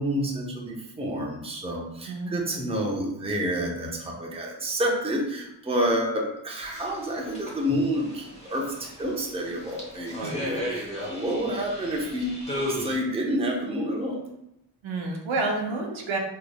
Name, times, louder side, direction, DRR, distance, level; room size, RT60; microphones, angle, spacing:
voice 1, 0.0-12.3 12.5-14.2, equal, 15° right, -1 dB, 0.6 m, -29 dB
voice 2, 2.1-2.4 10.2-10.5 14.8-16.2, right 3 dB, 80° right, 1 dB, 0.8 m, -29 dB
sound 1, 6.6-12.9, equal, 15° left, 0.9 m, -36 dB
3.7 x 3.2 x 2.2 m, 0.85 s
cardioid pair, 100°, 46 cm